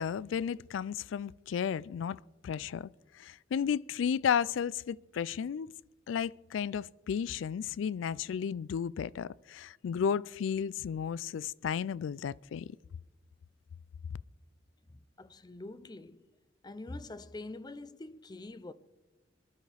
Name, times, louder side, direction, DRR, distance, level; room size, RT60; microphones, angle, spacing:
voice 1, 0.0-2.9 3.1-5.7 6.1-12.8, left 7 dB, 90° left, 0.3 m, -33 dB
voice 2, 15.2-16.2 16.6-18.7, left 2 dB, 20° left, 0.5 m, -44 dB
23.0 x 11.5 x 3.4 m
head